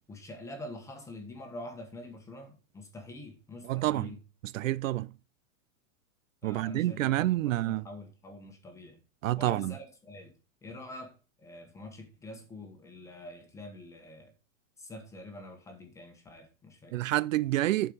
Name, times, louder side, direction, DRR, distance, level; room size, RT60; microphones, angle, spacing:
voice 1, 0.1-4.2 6.4-9.0 9.4-10.3 10.6-14.3 14.8-17.0, left 1 dB, 5° left, 1.2 m, -46 dB
voice 2, 3.6-4.1 4.4-5.1 6.4-7.9 9.2-9.7 16.9-17.9, right 16 dB, 70° right, 0.5 m, -28 dB
11.0 x 4.6 x 5.0 m
supercardioid pair, 165°, 41 cm